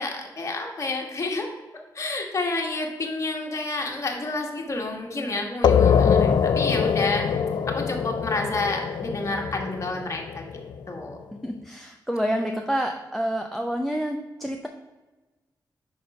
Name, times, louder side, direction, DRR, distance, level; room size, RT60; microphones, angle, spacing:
voice 1, 0.0-1.5 1.9-7.3 7.7-10.5 10.9-11.2, left 2 dB, 40° left, 1 dB, 1.3 m, -29 dB
sound 1, 5.6-11.0, left 7 dB, 75° left, 0.4 m, -23 dB
voice 2, 11.4-14.7, equal, ahead, 4 dB, 0.5 m, -28 dB
5.7 x 4.2 x 5.2 m, 1.1 s
wide cardioid pair, 100°, 8 cm